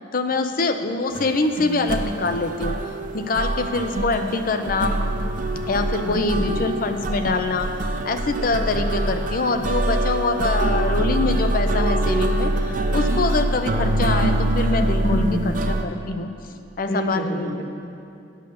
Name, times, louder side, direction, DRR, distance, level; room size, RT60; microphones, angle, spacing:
voice 1, 0.1-2.7 3.1-5.0 5.7-7.7 8.0-15.2 15.8-16.3 16.8-17.6, left 3 dB, 45° left, 7 dB, 0.6 m, -24 dB
sound 1, 1.1-15.8, right 1 dB, 45° right, 0.6 m, -24 dB
voice 2, 6.0-6.8 15.0-15.6 16.9-17.6, left 1 dB, 65° left, 0 dB, 1.4 m, -26 dB
8.9 x 6.6 x 6.8 m, 2.6 s
head